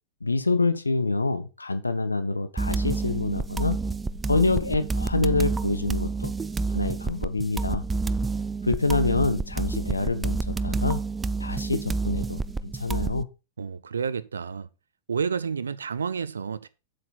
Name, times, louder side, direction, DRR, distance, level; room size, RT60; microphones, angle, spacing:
voice 1, 0.2-3.8 4.3-6.3 6.7-7.8 8.6-11.0 11.4-12.4 12.7-13.3, left 3 dB, 80° left, 0.6 m, -26 dB
sound 1, 2.6-13.2, right 3 dB, 15° right, 0.5 m, -29 dB
voice 2, 13.6-14.7 15.1-16.7, right 6 dB, 70° right, 0.4 m, -30 dB
7.9 x 7.7 x 4.0 m
figure-of-eight pair, 90°, 0 cm